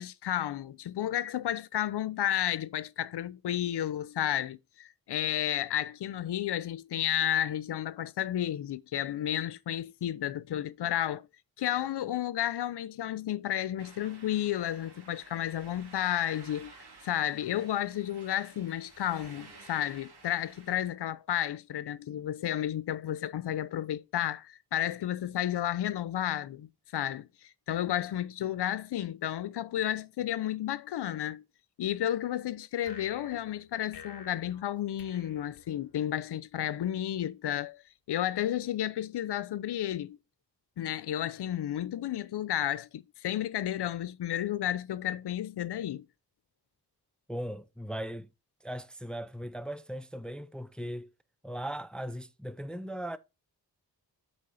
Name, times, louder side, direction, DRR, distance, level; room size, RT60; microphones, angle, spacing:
voice 1, 0.0-11.3 11.6-16.8 17.0-31.4 31.8-37.8 38.1-40.2 40.8-46.1, left 11 dB, 85° left, 0.7 m, -32 dB
sound 1, 13.8-20.8, right 4 dB, 75° right, 2.6 m, -54 dB
sound 2, 32.8-36.2, left 6 dB, 60° left, 1.4 m, -51 dB
voice 2, 47.3-48.3 48.6-51.1 51.4-53.2, equal, ahead, 0.5 m, -38 dB
8.5 x 5.4 x 4.2 m
wide cardioid pair, 90°, 39 cm